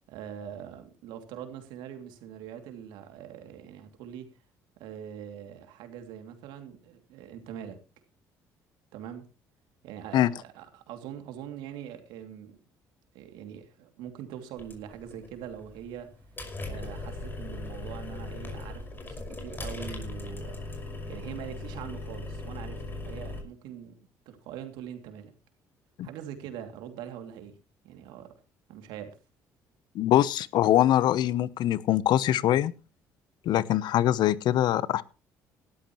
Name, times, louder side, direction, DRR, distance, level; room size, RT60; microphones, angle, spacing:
voice 1, 0.1-4.3 4.8-7.8 8.9-9.2 9.8-12.6 13.1-16.1 16.6-25.3 26.0-27.6 27.8-28.3 28.7-29.2, right 9 dB, 80° right, 6 dB, 2.8 m, -43 dB
sound 1, 14.6-23.4, left 2 dB, 25° left, 5.7 m, -39 dB
voice 2, 29.9-32.7 33.4-35.0, left 12 dB, 70° left, 19 dB, 0.9 m, -23 dB
18.0 x 13.0 x 3.1 m, 0.32 s
supercardioid pair, 70°, 8 cm